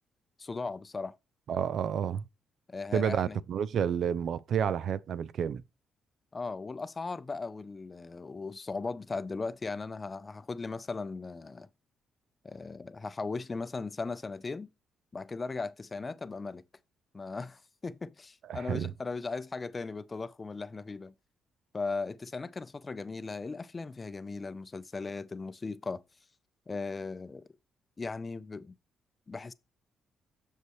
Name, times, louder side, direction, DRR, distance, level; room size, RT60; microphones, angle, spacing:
voice 1, 0.4-1.1 2.7-3.4 6.3-11.7 12.4-14.7 15.1-16.6 17.1-21.1 21.7-26.0 26.7-27.5 28.0-28.7 29.3-29.5, left 4 dB, 30° left, 0.6 m, -37 dB
voice 2, 1.5-2.2 2.9-5.6 18.5-18.9, right 8 dB, 65° right, 0.4 m, -30 dB
8.1 x 6.6 x 3.1 m
cardioid pair, 90°, 0 cm